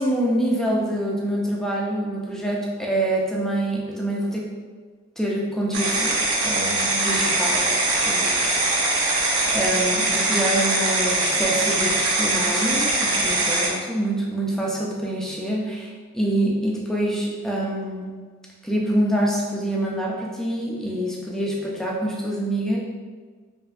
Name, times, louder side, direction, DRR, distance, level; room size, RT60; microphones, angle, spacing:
voice 1, 0.0-4.5 5.2-6.2 6.4-7.8 8.0-9.1 9.5-18.1 18.6-22.8, right 1 dB, ahead, -3 dB, 0.5 m, -26 dB
sound 1, 5.7-13.7, right 2 dB, 85° right, 0.8 m, -22 dB
5.1 x 2.6 x 2.5 m, 1.5 s
head